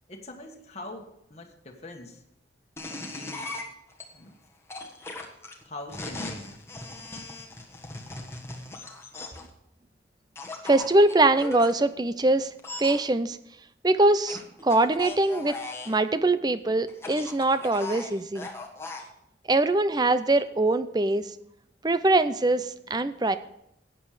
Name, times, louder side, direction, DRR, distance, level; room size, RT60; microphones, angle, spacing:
voice 1, 0.1-2.2 2.9-3.5 4.1-4.4 5.6-6.5, left 2 dB, 35° left, 1 dB, 1.5 m, -43 dB
sound 1, 2.8-4.0 4.7-9.5 10.4-11.7 12.6-13.0 14.3-16.0 16.9-19.1, left 2 dB, 15° left, 1.4 m, -38 dB
voice 2, 10.6-12.5 12.8-13.4 13.8-15.6 15.9-18.5 19.5-21.3 21.8-23.4, right 2 dB, 20° right, 13 dB, 0.5 m, -23 dB
13.5 x 9.1 x 5.0 m, 0.80 s
head